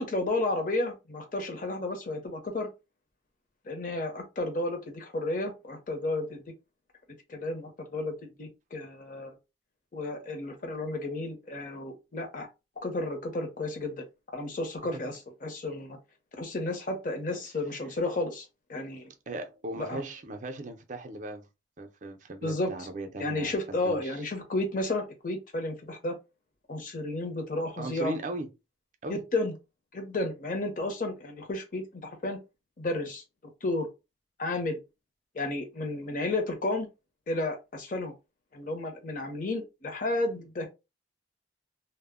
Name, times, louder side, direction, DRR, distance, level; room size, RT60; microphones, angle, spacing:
voice 1, 0.0-2.7 3.7-6.5 7.3-9.4 9.9-12.5 12.8-14.1 14.3-16.0 16.4-19.1 19.8-20.0 22.4-22.9 23.2-26.1 26.7-28.1 29.1-29.5 29.9-32.4 32.8-33.2 33.6-33.9 34.4-34.8 35.3-36.9 37.3-38.1 38.5-40.7, left 2 dB, 45° left, 0.6 m, -32 dB
voice 2, 19.3-21.5 21.8-24.2 27.8-28.5 29.0-29.2, right 2 dB, 40° right, 0.4 m, -38 dB
2.0 x 2.0 x 3.5 m
head